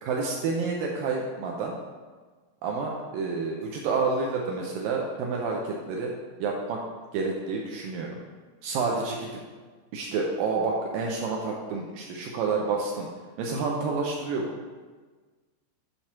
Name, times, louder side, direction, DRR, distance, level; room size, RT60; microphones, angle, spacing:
voice 1, 0.0-1.7 2.6-6.1 6.4-6.8 7.1-8.1 8.6-9.4 9.9-13.1 13.4-14.6, right 4 dB, 90° right, 0 dB, 1.9 m, -29 dB
9.8 x 3.4 x 5.7 m, 1.4 s
omnidirectional pair, 4.8 m